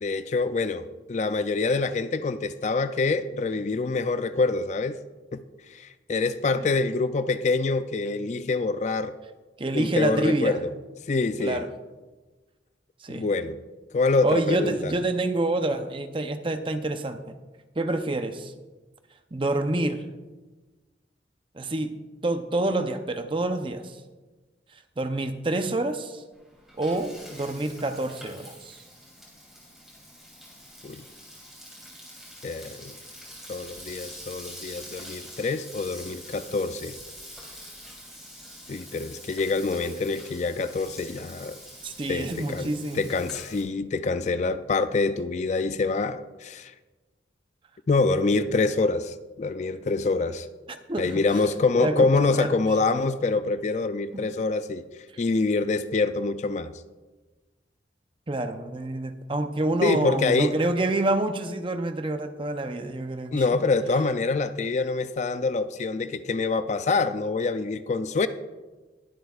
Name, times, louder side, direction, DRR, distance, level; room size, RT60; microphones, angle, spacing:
voice 1, 0.0-5.0 5.3-5.4 5.7-9.1 9.7-10.7 11.1-11.6 13.1-13.5 13.9-14.9 30.8-31.0 32.4-32.9 33.5-37.0 38.7-41.6 42.1-46.7 47.9-50.5 51.0-54.8 55.2-56.7 59.8-60.6 63.3-68.3, left 3 dB, 40° left, 11 dB, 0.4 m, -26 dB
voice 2, 9.6-10.6 11.4-11.7 13.0-13.3 14.2-17.4 17.8-18.5 19.3-20.0 21.5-21.9 22.2-24.0 25.0-26.2 26.8-28.8 41.8-43.0 50.9-51.1 51.8-52.5 54.1-54.2 58.3-63.4, right 2 dB, 30° right, 8 dB, 0.6 m, -27 dB
Frying (food), 26.3-43.6, equal, ahead, 3.3 m, -45 dB
21.0 x 7.8 x 2.4 m, 1.2 s
head